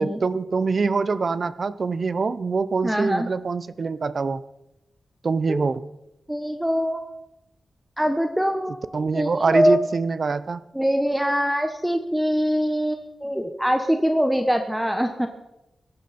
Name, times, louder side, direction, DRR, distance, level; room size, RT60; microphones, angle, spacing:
voice 1, 0.0-4.4 5.2-5.9 8.9-10.6, right 4 dB, 55° right, 16 dB, 0.7 m, -24 dB
voice 2, 2.8-3.3 5.5-5.6 6.3-7.0 8.0-10.0 10.7-15.3, equal, 5° right, 6 dB, 1.1 m, -23 dB
18.5 x 14.0 x 4.3 m, 0.90 s
wide cardioid pair, 100°, 0 cm